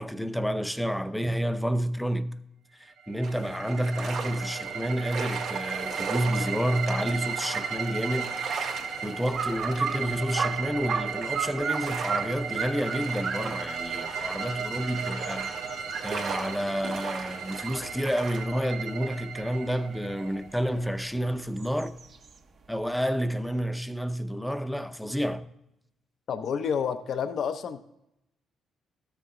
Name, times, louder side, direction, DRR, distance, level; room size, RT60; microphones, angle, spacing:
voice 1, 0.0-2.3 2.8-8.7 9.0-15.6 16.0-22.0 22.7-25.5, equal, 5° left, 0.5 m, -30 dB
sound 1, 3.0-20.8, right 6 dB, 85° right, 1.7 m, -35 dB
sound 2, 3.2-18.4, right 5 dB, 65° right, 1.7 m, -39 dB
sound 3, 9.3-18.9 19.4-22.4, right 5 dB, 50° right, 0.7 m, -36 dB
voice 2, 26.3-27.8, left 7 dB, 60° left, 0.5 m, -29 dB
13.0 x 6.8 x 3.6 m
cardioid pair, 90°, 0 cm